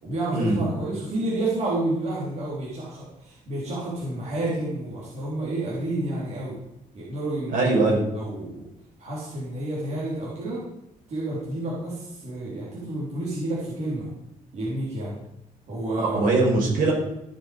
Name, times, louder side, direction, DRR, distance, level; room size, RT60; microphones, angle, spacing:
voice 1, 0.0-6.5 6.9-7.7 8.1-8.6 9.0-10.6 11.1-14.1 14.5-15.1 15.7-16.3, right 1 dB, 50° right, -7 dB, 4.5 m, -30 dB
voice 2, 7.5-8.0 16.0-16.9, right 2 dB, 70° right, -3 dB, 6.0 m, -21 dB
15.5 x 7.1 x 5.5 m, 0.83 s
cardioid pair, 160°, 15 cm